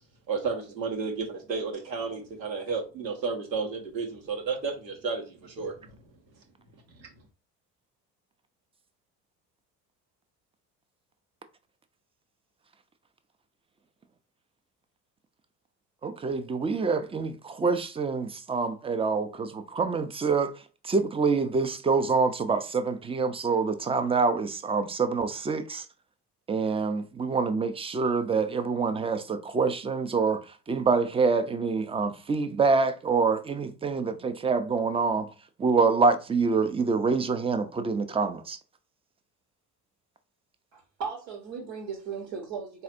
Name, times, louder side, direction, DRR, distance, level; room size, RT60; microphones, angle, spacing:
voice 1, 0.3-5.9 6.9-7.1, right 4 dB, 90° right, 1.2 m, -32 dB
voice 2, 16.0-20.5 20.9-25.8 26.5-30.4 30.7-35.3 35.6-38.6, right 4 dB, 10° right, 0.5 m, -26 dB
voice 3, 40.7-42.8, right 6 dB, 70° right, 1.3 m, -37 dB
4.0 x 2.6 x 4.2 m
hypercardioid pair, 65°, 49 cm